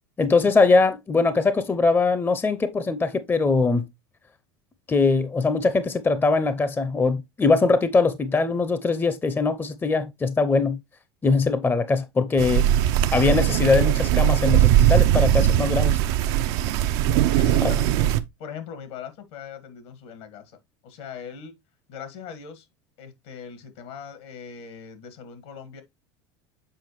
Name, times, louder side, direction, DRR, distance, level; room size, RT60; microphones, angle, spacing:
voice 1, 0.2-3.9 4.9-10.8 11.2-12.7 13.1-16.0 17.6-17.7, left 3 dB, 15° left, 0.7 m, -21 dB
sound 1, 12.4-18.2, right 12 dB, 65° right, 0.6 m, -20 dB
voice 2, 17.2-18.1 18.4-20.6 20.8-21.5 21.9-22.7 23.0-25.8, left 7 dB, 70° left, 1.8 m, -40 dB
7.7 x 4.8 x 3.1 m
hypercardioid pair, 95°, 14 cm